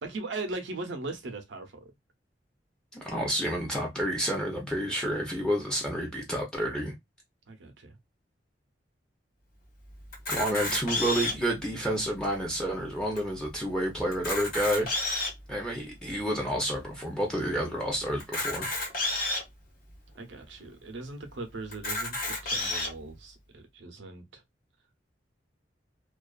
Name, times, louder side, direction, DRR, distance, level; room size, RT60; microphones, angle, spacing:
voice 1, 0.0-1.9 7.5-8.0 20.2-24.4, right 3 dB, 85° right, 0.6 m, -39 dB
voice 2, 3.0-6.9 10.3-14.9 15.5-18.7, equal, 5° left, 0.6 m, -29 dB
Camera, 10.1-11.5 12.2-12.3 12.5-12.6 13.2-13.3 14.1-15.4 16.1-16.2 18.2-19.4 20.2-20.3 20.5-20.6 21.7-22.9, left 2 dB, 55° left, 1.1 m, -30 dB
2.4 x 2.3 x 2.3 m
head